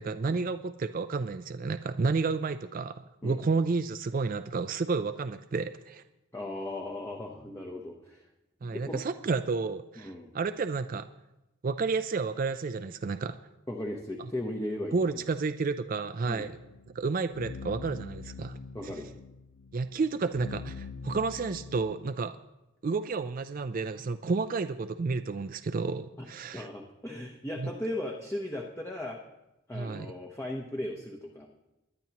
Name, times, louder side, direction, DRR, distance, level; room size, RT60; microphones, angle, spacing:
voice 1, 0.0-6.0 8.6-11.1 11.6-13.4 14.9-16.5 16.9-18.9 19.7-22.4 22.8-26.7 27.6-27.7 29.7-30.1, right 4 dB, 40° right, 11 dB, 0.4 m, -31 dB
voice 2, 6.3-8.2 8.6-9.0 10.0-10.3 13.7-15.2 16.3-16.5 18.7-19.1 26.2-26.3 26.5-29.2 29.7-31.5, left 1 dB, 10° left, 0 dB, 0.8 m, -37 dB
sound 1, 16.2-22.0, left 4 dB, 70° left, 0.6 m, -44 dB
21.0 x 10.5 x 2.9 m, 0.95 s
head